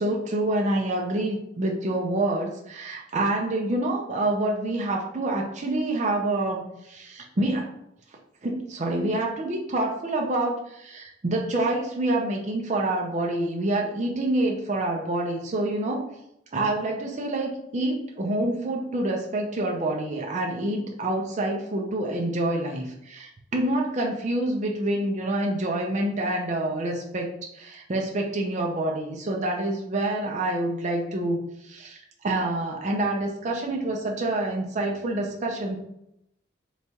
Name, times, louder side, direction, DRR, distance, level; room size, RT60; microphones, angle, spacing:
voice 1, 0.0-7.7 8.4-16.1 16.5-35.8, right 1 dB, 35° right, 0 dB, 0.5 m, -27 dB
3.4 x 3.2 x 2.8 m, 0.79 s
head